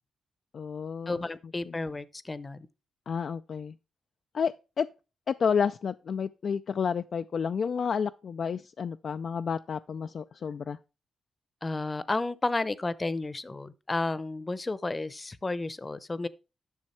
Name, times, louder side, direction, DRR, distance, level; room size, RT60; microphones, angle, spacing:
voice 1, 0.5-1.2 1.7-1.8 3.1-3.7 4.3-4.9 5.3-10.8, left 6 dB, 65° left, 0.4 m, -30 dB
voice 2, 1.1-2.7 11.6-16.3, left 2 dB, 25° left, 0.7 m, -32 dB
11.0 x 6.4 x 4.3 m
cardioid pair, 75°, 0 cm